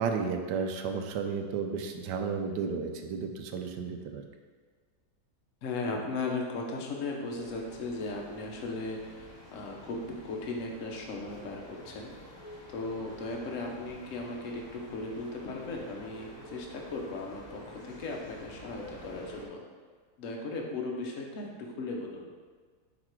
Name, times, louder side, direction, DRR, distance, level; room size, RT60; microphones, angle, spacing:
voice 1, 0.0-4.2, right 5 dB, 80° right, 5 dB, 1.2 m, -33 dB
voice 2, 5.6-10.0 10.2-12.1 12.7-19.6 20.2-22.3, left 3 dB, 55° left, 0 dB, 1.0 m, -37 dB
sound 1, 7.3-19.5, equal, 30° left, 1.0 m, -49 dB
5.2 x 4.0 x 4.5 m, 1.5 s
omnidirectional pair, 1.9 m